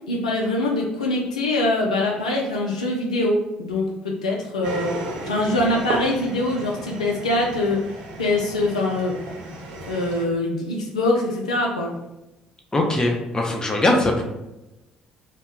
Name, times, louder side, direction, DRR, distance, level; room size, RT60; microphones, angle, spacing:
voice 1, 0.1-4.9 5.3-7.8 8.2-9.2 9.9-11.9, left 2 dB, 90° left, -1 dB, 0.3 m, -23 dB
sound 1, 4.6-10.2, right 2 dB, 70° right, 0.5 m, -34 dB
voice 2, 12.7-14.2, left 2 dB, 20° left, 1 dB, 0.6 m, -21 dB
2.3 x 2.1 x 3.3 m, 0.96 s
hypercardioid pair, 50°, 4 cm